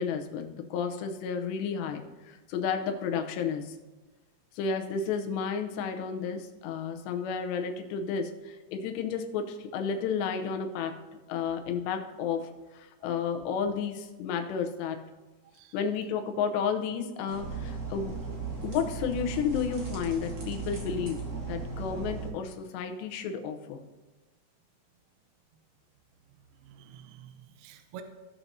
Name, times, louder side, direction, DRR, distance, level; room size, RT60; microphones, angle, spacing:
voice 1, 0.0-3.8 4.5-11.0 11.3-15.0 15.7-18.2 18.6-23.8, left 6 dB, 85° left, 5 dB, 3.0 m, -32 dB
sound 1, 17.3-22.3, right 4 dB, 55° right, 1.2 m, -36 dB
voice 2, 26.6-28.0, right 9 dB, 75° right, 7 dB, 2.5 m, -48 dB
17.0 x 6.0 x 2.7 m, 1.2 s
omnidirectional pair, 4.8 m